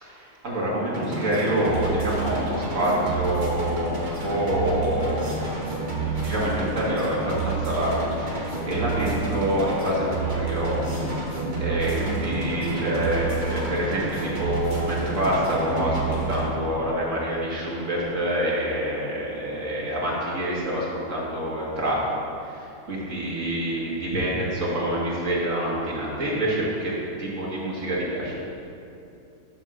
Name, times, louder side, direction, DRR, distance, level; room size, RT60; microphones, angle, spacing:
voice 1, 0.0-5.7 6.0-11.3 11.6-22.0 22.4-28.3, equal, 60° right, -6 dB, 2.1 m, -27 dB
sound 1, 0.9-16.5, right 3 dB, 35° right, 1.3 m, -29 dB
9.9 x 3.6 x 6.2 m, 2.7 s
omnidirectional pair, 1.5 m